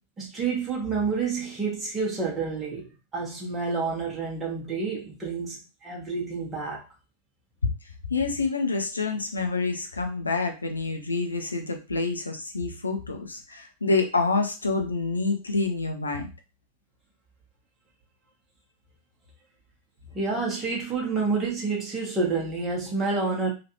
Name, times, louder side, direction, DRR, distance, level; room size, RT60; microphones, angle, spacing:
voice 1, 0.2-6.8 20.1-23.5, right 4 dB, 15° right, 1.1 m, -29 dB
voice 2, 8.1-16.3, left 3 dB, 80° left, 0.6 m, -27 dB
3.1 x 2.5 x 2.8 m
figure-of-eight pair, 90°, 0 cm